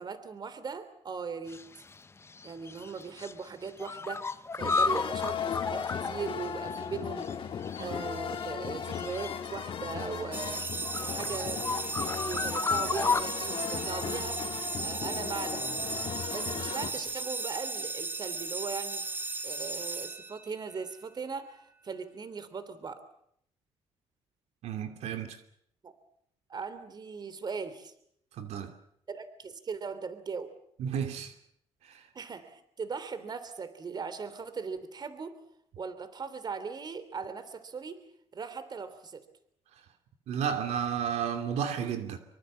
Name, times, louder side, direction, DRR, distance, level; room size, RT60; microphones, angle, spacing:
voice 1, 0.0-1.6 2.4-7.3 7.8-10.6 11.0-11.7 12.0-14.6 14.8-15.7 16.3-19.0 19.4-23.0 25.8-25.9 26.5-27.9 29.1-30.5 32.1-35.4 35.8-38.0 38.3-39.2, right 5 dB, 40° right, 3.1 m, -39 dB
sound 1, 1.5-2.0 2.3-3.3 3.6-7.0 7.2-7.3 7.6-9.6 9.9-13.2, left 4 dB, 25° left, 1.0 m, -33 dB
sound 2, 4.6-16.9, left 7 dB, 50° left, 2.7 m, -37 dB
sound 3, 10.3-20.7, right 3 dB, 15° right, 1.4 m, -36 dB
voice 2, 24.6-25.4 28.4-28.7 30.8-31.3 31.9-32.1 40.3-42.2, right 8 dB, 85° right, 2.7 m, -32 dB
25.0 x 24.0 x 7.5 m
cardioid pair, 110°, 11 cm